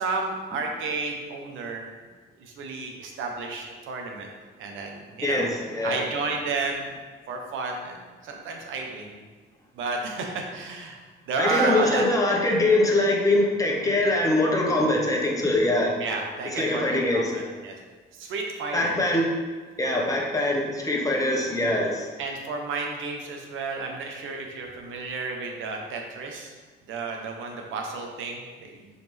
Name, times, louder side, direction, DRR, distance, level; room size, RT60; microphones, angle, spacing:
voice 1, 0.0-1.8 2.4-4.3 4.6-5.5 5.8-6.9 7.3-8.0 8.2-9.2 9.7-11.0 11.3-12.0 16.0-17.8 18.2-19.2 19.8-19.9 22.2-26.5 26.9-28.9, right 4 dB, 85° right, 2 dB, 1.0 m, -32 dB
voice 2, 5.2-6.0 11.4-15.9 16.5-17.5 18.7-19.3 19.8-22.1, left 1 dB, 15° left, -1 dB, 1.3 m, -23 dB
6.7 x 4.2 x 3.4 m, 1.4 s
cardioid pair, 90°, 20 cm